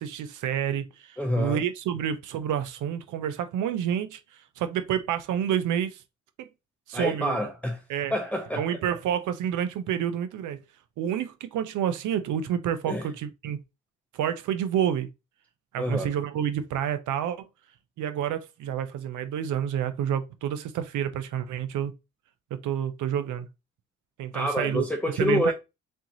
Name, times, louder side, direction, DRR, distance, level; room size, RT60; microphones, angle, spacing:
voice 1, 0.0-4.2 4.6-6.0 6.4-6.5 6.9-7.4 7.9-8.1 8.6-10.6 11.0-13.6 14.1-15.1 15.7-17.5 18.0-21.9 22.5-23.5 24.2-24.8 25.2-25.5, right 9 dB, 80° right, 0.8 m, -29 dB
voice 2, 1.2-1.6 6.9-7.8 8.1-8.6 12.9-13.1 15.8-16.1 24.3-25.5, left 1 dB, 5° left, 0.9 m, -27 dB
4.4 x 3.8 x 3.0 m
cardioid pair, 90°, 30 cm